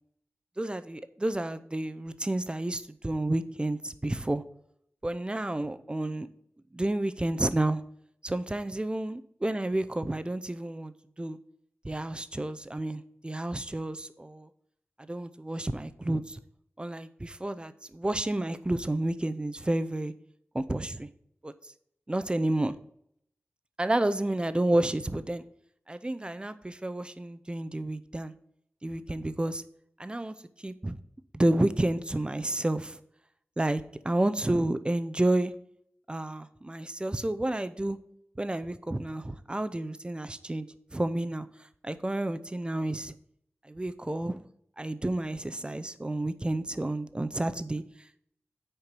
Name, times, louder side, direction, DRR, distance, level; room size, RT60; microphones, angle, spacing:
voice 1, 0.6-4.4 5.0-6.3 6.7-7.8 8.2-10.9 11.2-11.4 11.8-14.5 15.1-16.4 16.8-20.1 20.5-21.1 21.4-21.5 22.1-22.8 23.8-25.4 25.9-28.3 28.8-29.6 30.0-30.3 30.6-31.0 31.3-33.0 33.6-35.5 36.1-38.0 38.4-40.7 40.9-41.5 41.8-43.1 43.7-44.4 44.8-47.8, right 1 dB, 20° right, 12 dB, 0.6 m, -30 dB
6.6 x 4.6 x 6.8 m, 0.70 s
cardioid pair, 50°, 4 cm